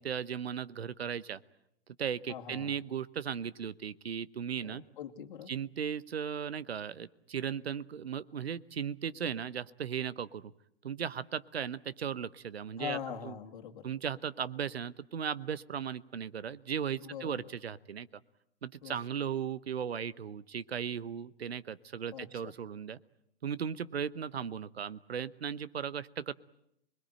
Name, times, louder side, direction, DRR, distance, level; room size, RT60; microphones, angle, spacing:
voice 1, 0.0-1.4 2.0-4.8 5.5-10.5 10.8-13.0 13.2-13.4 13.8-18.2 18.6-23.0 23.4-26.3, right 8 dB, 75° right, 18 dB, 0.9 m, -37 dB
voice 2, 2.3-2.7 4.6-5.5 12.8-13.9 17.0-17.3 18.8-18.9 22.1-22.5, left 9 dB, 50° left, 2 dB, 2.3 m, -42 dB
27.0 x 21.0 x 9.0 m, 0.77 s
figure-of-eight pair, 120°, 31 cm